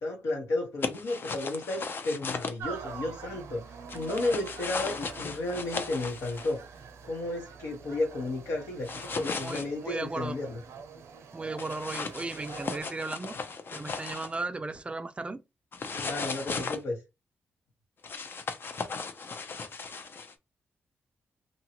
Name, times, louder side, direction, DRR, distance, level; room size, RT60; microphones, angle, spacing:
voice 1, 0.0-3.6 3.9-6.6 7.0-10.6 15.9-17.0, left 2 dB, 85° left, 1.2 m, -33 dB
sound 1, 0.8-2.5 3.9-6.5 8.8-9.6 11.6-14.4 15.7-16.8 18.0-20.3, left 4 dB, 50° left, 0.5 m, -36 dB
sound 2, 2.6-12.8, right 6 dB, 80° right, 0.5 m, -45 dB
voice 2, 9.4-10.3 11.3-13.4 13.7-15.4, right 3 dB, 25° right, 0.3 m, -36 dB
2.9 x 2.4 x 2.9 m
cardioid pair, 80°, 5 cm